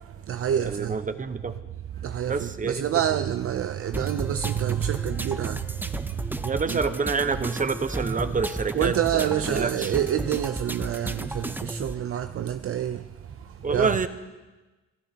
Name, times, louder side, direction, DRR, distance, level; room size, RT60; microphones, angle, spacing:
voice 1, 0.1-1.0 2.0-6.8 8.7-14.1, right 10 dB, 50° right, 0.5 m, -28 dB
voice 2, 0.6-1.6 2.3-2.9 6.4-9.9 13.6-14.1, right 4 dB, 25° right, 1.0 m, -27 dB
sound 1, 3.9-11.9, right 1 dB, 5° right, 0.6 m, -34 dB
28.0 x 12.5 x 2.9 m
cardioid pair, 90°, 30 cm